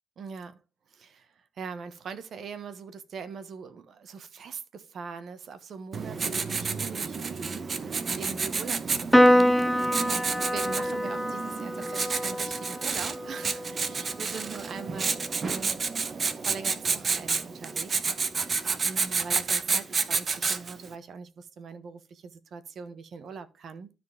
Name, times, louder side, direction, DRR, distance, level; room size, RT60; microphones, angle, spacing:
voice 1, 0.2-0.6 0.9-9.6 10.4-15.8 16.1-18.1 18.8-23.9, right 5 dB, 60° right, 1.2 m, -42 dB
Writing, 5.9-20.9, right 5 dB, 40° right, 0.9 m, -30 dB
Piano, 9.1-15.8, equal, 5° left, 0.5 m, -26 dB
12.5 x 4.4 x 3.5 m
cardioid pair, 90°, 0 cm